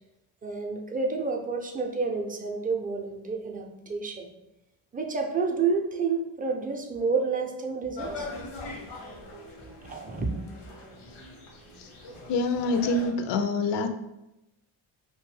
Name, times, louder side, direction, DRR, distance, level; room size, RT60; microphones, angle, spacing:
voice 1, 0.4-4.3 4.9-8.3 8.7-8.8 9.8-10.3, right 4 dB, 20° right, 2 dB, 0.4 m, -29 dB
sound 1, 8.0-13.1, left 2 dB, 85° left, 0.9 m, -41 dB
voice 2, 12.3-13.9, left 3 dB, 60° left, 7 dB, 0.5 m, -26 dB
2.6 x 2.2 x 3.2 m, 0.91 s
supercardioid pair, 65°, 48 cm